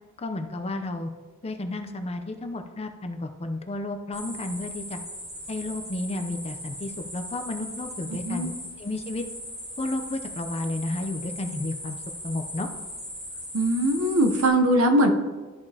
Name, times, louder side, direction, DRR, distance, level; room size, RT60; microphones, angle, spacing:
voice 1, 0.2-1.1 1.4-5.0 5.5-8.5 8.8-9.3 9.8-12.7, left 2 dB, 30° left, 6 dB, 0.5 m, -32 dB
sound 1, 4.1-14.5, equal, 15° right, 1.8 m, -39 dB
voice 2, 13.5-15.1, right 1 dB, 70° right, 4 dB, 0.8 m, -21 dB
12.5 x 4.9 x 2.8 m, 1.4 s
head